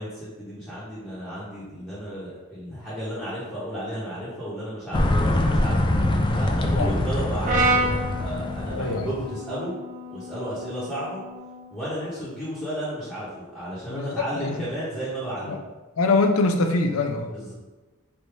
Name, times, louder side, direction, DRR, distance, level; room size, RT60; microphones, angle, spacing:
voice 1, 0.0-5.9 6.3-9.7 10.1-11.2 11.7-15.6 17.3-17.5, equal, 5° left, -12 dB, 1.0 m, -33 dB
sound 1, 4.9-9.3, left 1 dB, 20° left, 0.3 m, -24 dB
Brass instrument, 7.4-11.7, right 2 dB, 35° right, 0.6 m, -29 dB
voice 2, 8.7-9.1 13.9-14.6 15.5-15.6 16.0-17.3, left 3 dB, 75° left, 5 dB, 0.5 m, -23 dB
3.4 x 2.6 x 4.6 m, 1.2 s
head